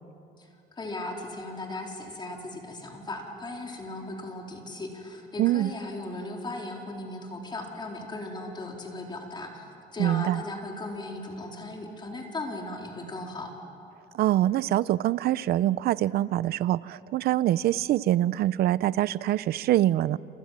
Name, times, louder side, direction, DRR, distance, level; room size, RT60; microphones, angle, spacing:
voice 1, 0.7-13.5, left 2 dB, 25° left, 1 dB, 4.2 m, -37 dB
voice 2, 5.4-5.7 10.0-10.4 14.1-20.2, right 14 dB, 70° right, 18 dB, 0.6 m, -24 dB
28.0 x 28.0 x 7.6 m, 2.7 s
cardioid pair, 110°, 17 cm